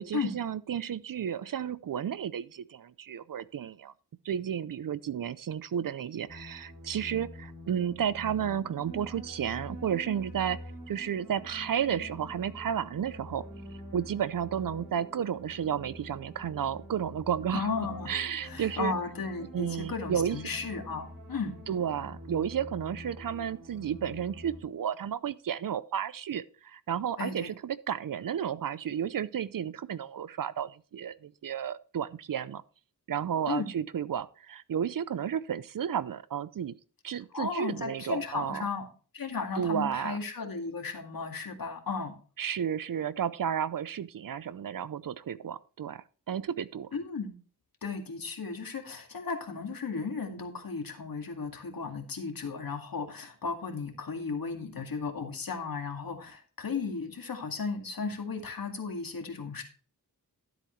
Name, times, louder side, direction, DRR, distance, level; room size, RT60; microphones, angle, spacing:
voice 1, 0.0-3.9 4.2-10.6 10.9-13.4 13.9-17.7 18.1-18.9 19.5-20.4 21.7-32.6 33.1-36.7 37.0-38.6 39.6-40.2 42.4-46.9, right 8 dB, 60° right, 0.6 m, -32 dB
sound 1, 6.3-24.6, left 1 dB, 90° right, 4.2 m, -46 dB
voice 2, 17.5-18.2 18.4-21.6 27.2-27.5 33.5-33.7 37.3-38.8 39.1-42.1 46.9-47.3 47.8-59.6, left 4 dB, 65° left, 2.2 m, -35 dB
13.0 x 7.9 x 3.2 m
wide cardioid pair, 90°, 37 cm